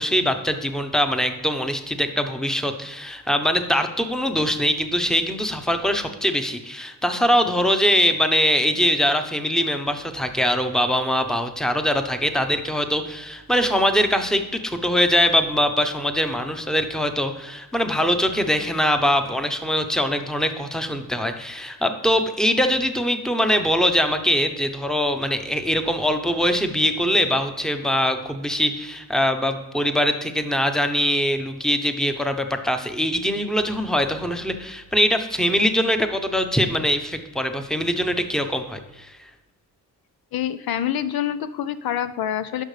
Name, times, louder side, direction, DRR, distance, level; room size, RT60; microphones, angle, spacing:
voice 1, 0.0-39.1, equal, ahead, 7 dB, 0.9 m, -22 dB
voice 2, 40.3-42.6, left 10 dB, 70° left, 12 dB, 0.6 m, -26 dB
11.0 x 5.8 x 3.3 m, 1.1 s
cardioid pair, 70°, 38 cm